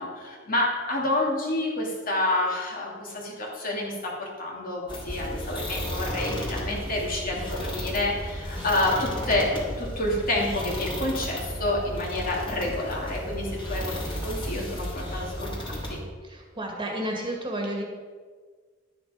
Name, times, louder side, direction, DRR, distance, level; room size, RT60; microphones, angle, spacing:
voice 1, 0.0-14.0 14.2-16.0, left 2 dB, 50° left, -2 dB, 2.6 m, -28 dB
sound 1, 4.9-16.0, equal, 25° left, 2.8 m, -34 dB
voice 2, 16.2-17.8, right 1 dB, 25° right, 0 dB, 2.0 m, -31 dB
11.5 x 9.3 x 5.0 m, 1.5 s
head